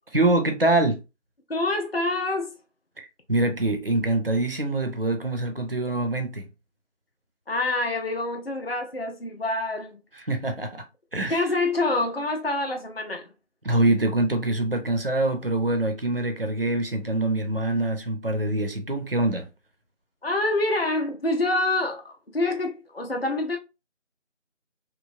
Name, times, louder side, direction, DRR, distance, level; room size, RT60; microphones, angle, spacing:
voice 1, 0.1-1.0 3.0-6.5 10.1-10.8 11.1-11.5 13.6-19.5, right 2 dB, 50° right, 0.4 m, -24 dB
voice 2, 1.5-2.5 7.5-10.0 11.2-13.3 20.2-23.6, left 2 dB, 50° left, 0.5 m, -26 dB
3.0 x 2.0 x 2.4 m
figure-of-eight pair, 180°, 37 cm